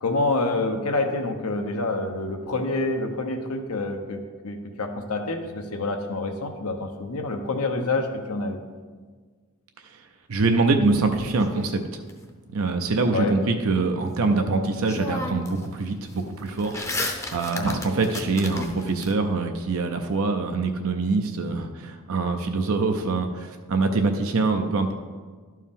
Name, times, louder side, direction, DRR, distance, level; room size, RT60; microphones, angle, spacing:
voice 1, 0.0-8.6 13.1-13.4 17.5-17.8, left 2 dB, 85° left, 5 dB, 0.8 m, -27 dB
voice 2, 10.3-12.0 12.5-24.9, right 3 dB, 70° right, 5 dB, 0.5 m, -24 dB
sound 1, 10.8-12.1 14.3-14.4 14.8-15.6 15.9-19.1, left 2 dB, 15° left, 0.6 m, -33 dB
11.5 x 4.6 x 3.6 m, 1.5 s
head